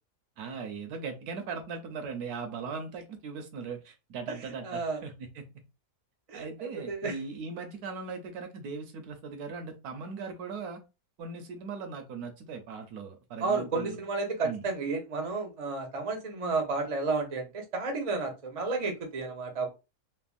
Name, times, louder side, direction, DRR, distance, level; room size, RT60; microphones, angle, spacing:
voice 1, 0.4-5.6 6.3-10.8 11.2-14.0 14.4-14.6, right 5 dB, 75° right, 1.1 m, -39 dB
voice 2, 4.6-5.0 6.3-7.2 13.4-19.7, right 3 dB, 45° right, 0.4 m, -32 dB
3.3 x 2.0 x 2.4 m
omnidirectional pair, 1.7 m